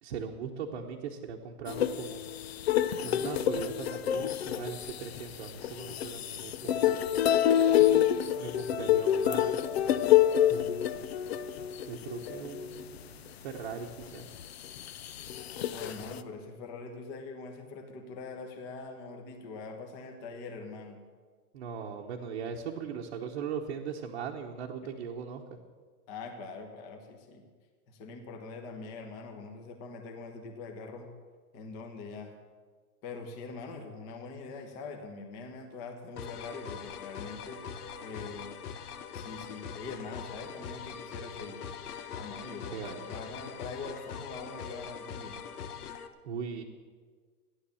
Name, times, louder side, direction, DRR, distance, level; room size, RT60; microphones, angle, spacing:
voice 1, 0.0-2.3 3.0-7.0 7.9-9.7 10.5-11.1 11.9-14.3 21.5-25.4 42.7-43.1 46.2-46.6, right 6 dB, 40° right, 0 dB, 1.1 m, -39 dB
sound 1, 1.7-13.0 13.5-13.6 14.0-16.2, left 11 dB, 45° left, 0.6 m, -28 dB
voice 2, 15.7-21.0 26.1-27.4 27.9-31.1 31.5-32.3 33.0-38.5 39.1-41.6 42.1-45.4, left 4 dB, 20° left, 4 dB, 1.3 m, -43 dB
sound 2, 36.2-46.1, left 7 dB, 85° left, 1.3 m, -42 dB
14.5 x 10.5 x 7.1 m, 1.6 s
supercardioid pair, 175°, 45 cm